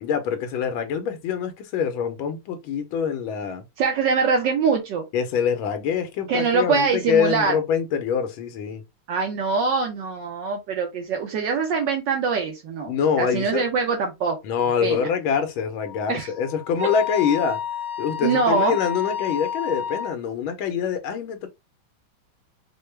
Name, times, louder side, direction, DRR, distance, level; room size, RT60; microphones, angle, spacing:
voice 1, 0.0-3.6 5.1-8.8 12.9-13.7 14.4-17.6 18.0-21.5, left 7 dB, 90° left, 1.5 m, -25 dB
voice 2, 3.8-5.0 6.3-7.6 9.1-14.4 14.8-15.1 16.1-16.3 16.8-16.9 18.2-18.8, right 5 dB, 70° right, 1.4 m, -23 dB
Wind instrument woodwind instrument, 15.8-20.1, left 8 dB, 45° right, 1.7 m, -31 dB
4.7 x 2.1 x 3.2 m
omnidirectional pair, 2.2 m